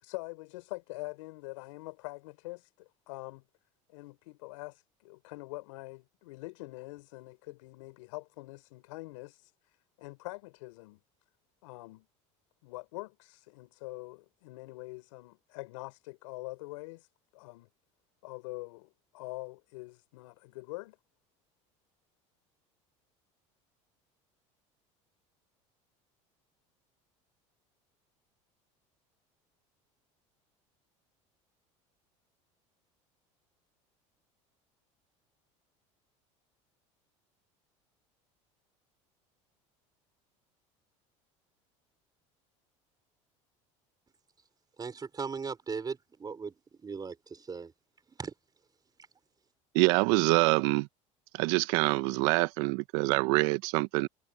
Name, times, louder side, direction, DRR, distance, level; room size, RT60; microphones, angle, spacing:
voice 1, 0.0-3.4 3.9-9.4 10.0-11.0 11.6-12.1 12.6-17.1 17.3-17.7 18.2-21.0, left 23 dB, 80° left, 6.2 m, -44 dB
voice 2, 44.8-46.5 46.8-47.7 48.2-48.3, right 5 dB, 25° right, 4.2 m, -38 dB
voice 3, 49.7-50.9 51.3-54.1, right 23 dB, 75° right, 1.2 m, -25 dB
supercardioid pair, 95°, 16 cm